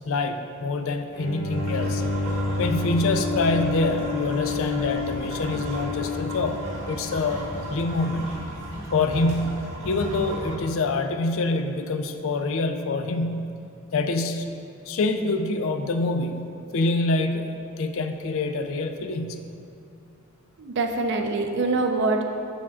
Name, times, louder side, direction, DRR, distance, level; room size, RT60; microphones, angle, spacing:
voice 1, 0.0-2.0 2.6-8.3 8.9-13.5 13.9-14.5 14.9-16.5 16.7-17.5 17.8-19.4, left 2 dB, 65° left, 7 dB, 0.4 m, -26 dB
Bowed string instrument, 1.1-8.4, left 4 dB, 35° left, 1.3 m, -30 dB
sound 1, 1.5-10.6, right 1 dB, 85° right, 1.3 m, -35 dB
voice 2, 20.6-22.2, right 3 dB, 55° right, 4 dB, 0.5 m, -24 dB
7.3 x 6.9 x 2.4 m, 2.5 s
head